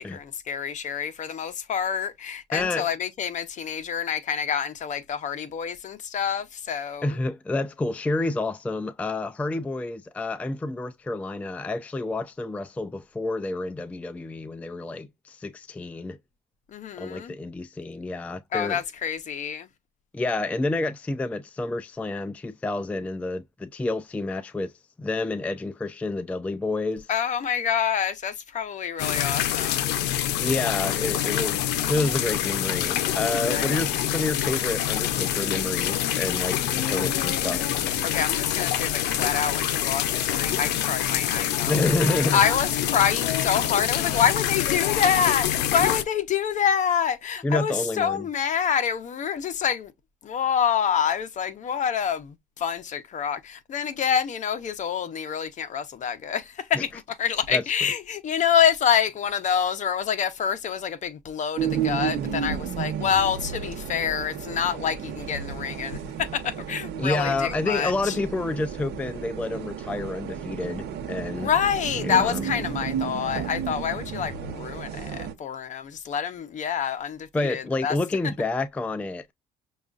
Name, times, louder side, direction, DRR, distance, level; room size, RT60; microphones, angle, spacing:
voice 1, 0.0-7.2 16.7-17.3 18.5-19.7 27.1-30.1 33.4-33.9 38.0-41.9 42.3-49.9 50.2-56.9 57.2-68.2 71.4-78.0, left 8 dB, 45° left, 0.7 m, -27 dB
voice 2, 2.5-2.9 7.0-16.2 17.0-18.8 20.1-24.7 25.0-27.1 30.4-37.7 41.7-42.4 47.4-48.3 56.7-56.8 57.5-57.6 67.0-71.5 72.0-72.4 77.3-79.3, left 2 dB, 10° left, 0.3 m, -29 dB
sound 1, 29.0-46.0, left 11 dB, 85° left, 0.6 m, -26 dB
sound 2, 61.6-75.3, right 8 dB, 80° right, 0.8 m, -32 dB
6.1 x 2.3 x 2.4 m
cardioid pair, 110°, 17 cm